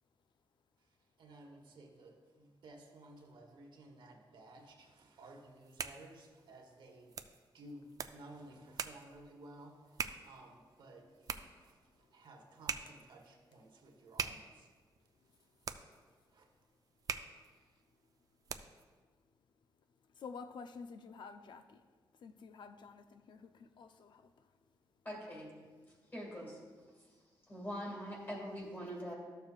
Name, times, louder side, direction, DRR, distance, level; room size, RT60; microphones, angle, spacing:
voice 1, 1.2-7.3 7.5-14.7 16.3-16.5 17.4-17.8, right 1 dB, 70° right, 2 dB, 1.1 m, -56 dB
sound 1, 5.4-18.9, right 6 dB, 45° right, 0.4 m, -45 dB
voice 2, 20.1-21.8 22.2-24.5, left 5 dB, 65° left, 8 dB, 0.4 m, -50 dB
voice 3, 25.0-25.7 26.1-26.6 27.5-29.1, equal, 25° left, -2 dB, 2.0 m, -43 dB
13.0 x 6.8 x 2.4 m, 1.5 s
wide cardioid pair, 160°, 8 cm